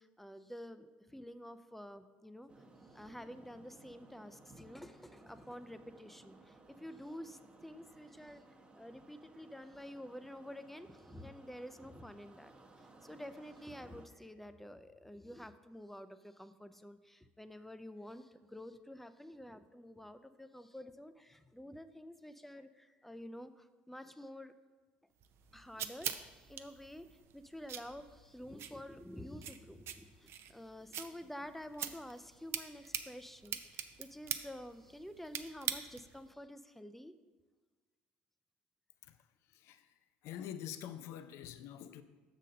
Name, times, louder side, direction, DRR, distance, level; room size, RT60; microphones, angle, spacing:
voice 1, 0.0-2.5 2.9-8.4 8.8-24.5 25.5-27.1 27.3-37.1, equal, 5° left, 11 dB, 0.5 m, -49 dB
sound 1, 2.5-14.1, right 2 dB, 20° right, 0.8 m, -60 dB
sound 2, 25.2-36.2, right 9 dB, 55° right, 0.5 m, -44 dB
voice 2, 39.5-39.9 40.2-42.0, left 10 dB, 65° left, 11 dB, 0.5 m, -46 dB
6.3 x 4.1 x 6.4 m, 1.3 s
hypercardioid pair, 65°, 5 cm